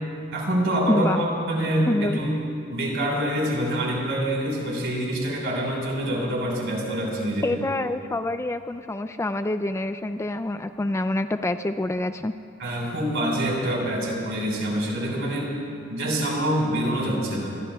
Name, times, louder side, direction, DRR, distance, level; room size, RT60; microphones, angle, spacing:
voice 1, 0.3-2.4 2.7-7.6 12.6-15.5 15.9-17.6, right 1 dB, 65° right, -2 dB, 4.6 m, -26 dB
voice 2, 0.9-1.2 1.9-2.2 7.4-12.3, left 1 dB, 15° left, 9 dB, 0.3 m, -26 dB
26.5 x 22.5 x 2.3 m, 2.5 s
head